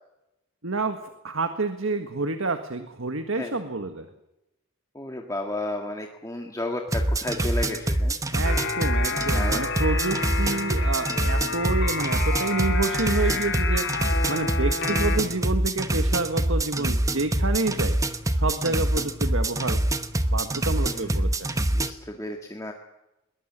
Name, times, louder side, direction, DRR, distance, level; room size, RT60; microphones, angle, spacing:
voice 1, 0.6-4.0 8.3-14.0 14.3-18.0 18.3-19.8 20.3-21.7, right 3 dB, 75° right, 8 dB, 1.7 m, -28 dB
voice 2, 5.0-8.2 9.3-9.7 20.8-21.3 21.7-22.7, left 1 dB, 15° left, 2 dB, 1.8 m, -33 dB
sound 1, 6.9-21.9, right 1 dB, 15° right, 1.0 m, -25 dB
sound 2, 8.4-15.2, left 4 dB, 55° left, 3.7 m, -30 dB
22.0 x 20.5 x 7.5 m, 0.93 s
head